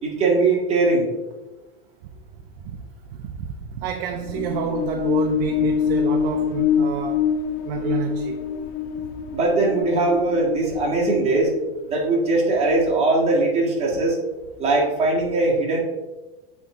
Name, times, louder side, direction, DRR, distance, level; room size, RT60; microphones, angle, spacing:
voice 1, 0.0-1.1 9.3-11.5 11.9-14.2 14.6-15.8, right 2 dB, 20° right, 1.8 m, -20 dB
voice 2, 3.1-7.3 7.6-8.4, right 7 dB, 65° right, 0.7 m, -29 dB
sound 1, 4.1-11.8, left 8 dB, 35° left, 0.4 m, -25 dB
8.0 x 3.4 x 3.7 m
supercardioid pair, 140°, 29 cm